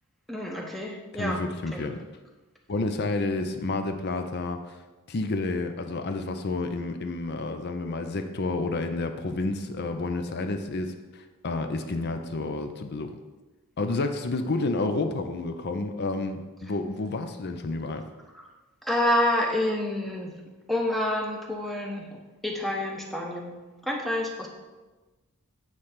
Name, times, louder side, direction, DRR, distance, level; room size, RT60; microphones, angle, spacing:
voice 1, 0.3-1.4 1.7-1.8 18.9-20.3 20.7-22.0 22.4-23.5 23.8-24.5, left 1 dB, ahead, 0 dB, 0.7 m, -28 dB
voice 2, 1.1-2.0 2.7-4.8 5.1-13.1 13.8-18.1, left 2 dB, 45° left, 7 dB, 0.5 m, -30 dB
8.7 x 3.3 x 5.7 m, 1.2 s
head